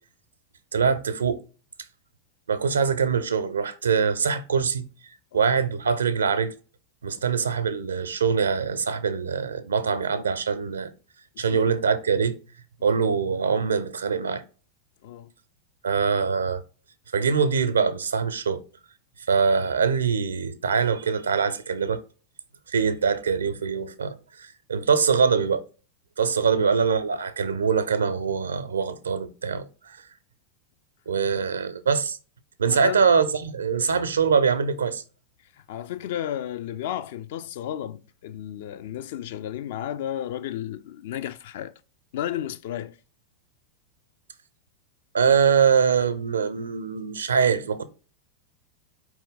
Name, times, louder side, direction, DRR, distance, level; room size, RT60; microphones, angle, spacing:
voice 1, 0.7-1.4 2.5-4.9 5.3-6.5 7.0-10.9 11.4-12.4 12.8-14.4 15.8-16.6 17.1-18.6 19.3-22.0 22.7-25.6 26.2-30.0 31.1-32.2 32.6-35.0 45.1-47.8, right 6 dB, 70° right, 0.5 m, -23 dB
voice 2, 32.7-33.1 35.7-41.7 42.1-42.9, left 11 dB, 55° left, 0.4 m, -33 dB
4.4 x 3.0 x 3.8 m
figure-of-eight pair, 90°, 0 cm